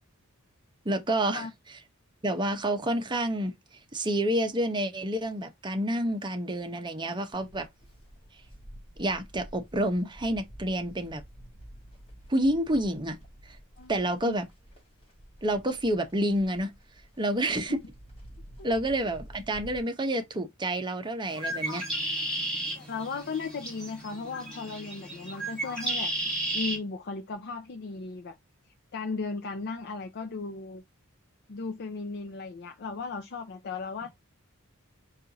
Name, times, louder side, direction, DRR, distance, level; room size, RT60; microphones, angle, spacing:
voice 1, 0.8-1.5 2.2-3.5 3.9-7.7 9.0-11.2 12.3-13.2 13.5-13.6 13.9-14.4 15.4-16.7 17.2-17.8 18.6-21.8, right 1 dB, 20° right, 0.8 m, -28 dB
Livestock farm animals working animals, 7.3-19.8, equal, 25° left, 2.0 m, -50 dB
voice 2, 13.8-14.3 17.7-17.8 18.6-18.7 22.7-26.1 26.5-28.4 28.9-30.8 31.5-34.1, left 4 dB, 50° left, 0.5 m, -36 dB
Bird, 21.3-26.8, right 1 dB, 5° left, 1.8 m, -33 dB
4.4 x 2.5 x 3.8 m
head